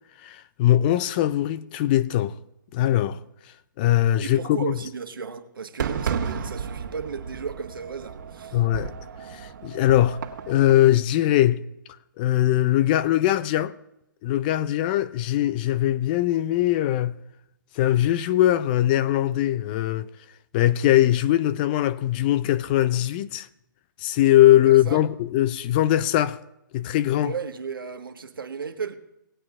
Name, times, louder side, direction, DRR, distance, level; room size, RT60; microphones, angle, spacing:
voice 1, 0.2-2.4 2.7-3.2 3.8-4.8 8.5-8.9 9.3-11.6 12.2-13.7 14.2-17.2 17.8-20.1 20.5-23.5 24.0-26.4 26.7-27.3, left 13 dB, 25° left, 0.4 m, -21 dB
voice 2, 4.2-8.6 24.5-25.0 27.2-28.9, right 5 dB, 85° right, 1.4 m, -34 dB
Fireworks, 5.8-10.9, right 7 dB, 65° right, 1.7 m, -33 dB
19.0 x 8.7 x 3.6 m
hypercardioid pair, 150°, 11 cm